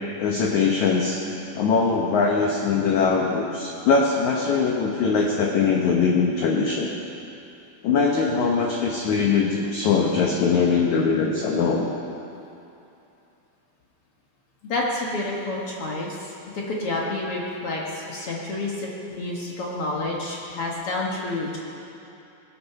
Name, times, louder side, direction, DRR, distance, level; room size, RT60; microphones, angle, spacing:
voice 1, 0.2-1.2 1.6-6.9 7.8-11.9, left 5 dB, 85° left, 0 dB, 1.6 m, -21 dB
voice 2, 14.6-21.6, left 2 dB, 60° left, -3 dB, 1.5 m, -29 dB
20.5 x 8.6 x 5.8 m, 2.8 s
omnidirectional pair, 4.9 m